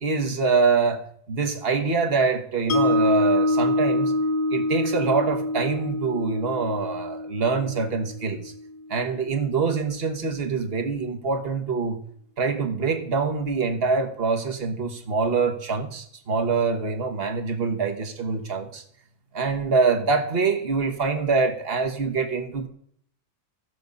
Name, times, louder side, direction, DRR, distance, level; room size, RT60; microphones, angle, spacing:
voice 1, 0.0-1.0 1.3-4.1 4.5-8.5 8.9-12.0 12.4-18.8 19.3-22.7, right 4 dB, 45° right, 5 dB, 1.5 m, -25 dB
Mallet percussion, 2.7-8.9, left 1 dB, 80° left, 1.8 m, -25 dB
15.0 x 6.8 x 5.3 m, 0.66 s
omnidirectional pair, 1.4 m